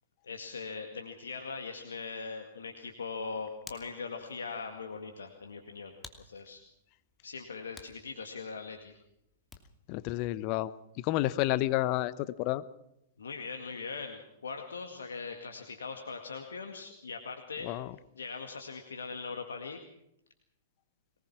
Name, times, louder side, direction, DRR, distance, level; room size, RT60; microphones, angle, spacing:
voice 1, 0.2-6.6 7.2-9.0 13.2-17.7 18.1-19.8, left 4 dB, 75° left, 4 dB, 2.0 m, -41 dB
Hands, 3.0-9.9, left 4 dB, 15° left, 2.6 m, -56 dB
voice 2, 9.9-12.6 17.6-17.9, left 16 dB, 45° left, 16 dB, 1.0 m, -30 dB
23.0 x 19.5 x 6.1 m, 0.81 s
figure-of-eight pair, 105°, 0 cm